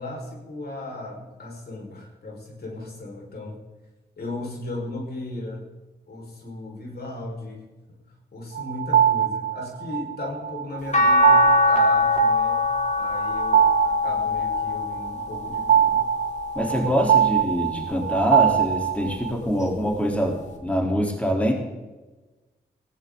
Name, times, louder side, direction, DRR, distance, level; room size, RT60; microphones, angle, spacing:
voice 1, 0.0-3.6 4.2-5.6 6.1-7.6 7.9-8.0 8.3-12.7 12.9-16.1, left 2 dB, 65° left, 0 dB, 5.4 m, -36 dB
sound 1, 8.6-19.3, right 10 dB, 90° right, 0.8 m, -23 dB
sound 2, 10.9-17.2 17.8-19.2 20.6-20.7, left 2 dB, 45° left, 3.8 m, -24 dB
voice 2, 16.6-21.5, equal, 5° left, 0 dB, 3.9 m, -24 dB
18.0 x 16.5 x 4.0 m, 1.2 s
cardioid pair, 55°, 18 cm